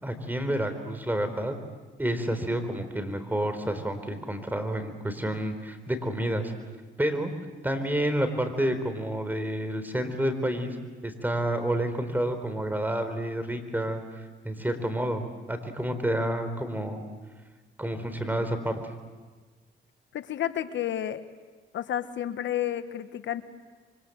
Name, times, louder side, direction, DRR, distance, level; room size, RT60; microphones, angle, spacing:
voice 1, 0.0-1.5 2.0-6.5 7.0-7.3 7.6-10.8 11.0-14.0 14.4-17.0 17.8-18.8, right 1 dB, 10° right, 8 dB, 4.0 m, -29 dB
voice 2, 20.1-21.2 21.7-23.4, left 11 dB, 70° left, 11 dB, 1.3 m, -31 dB
27.0 x 24.5 x 7.9 m, 1.3 s
cardioid pair, 90°, 20 cm